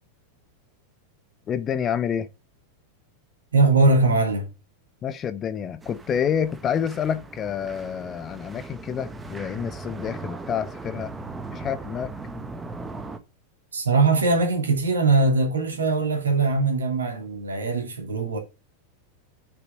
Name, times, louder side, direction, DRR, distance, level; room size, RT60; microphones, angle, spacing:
voice 1, 1.5-2.3 5.0-11.1 11.5-12.1, left 8 dB, 25° left, 1.0 m, -28 dB
voice 2, 3.5-4.5 13.7-18.4, right 3 dB, 70° right, 2.9 m, -21 dB
sound 1, 5.8-13.2, right 3 dB, 10° right, 1.3 m, -38 dB
7.2 x 6.7 x 6.3 m
figure-of-eight pair, 90°, 0 cm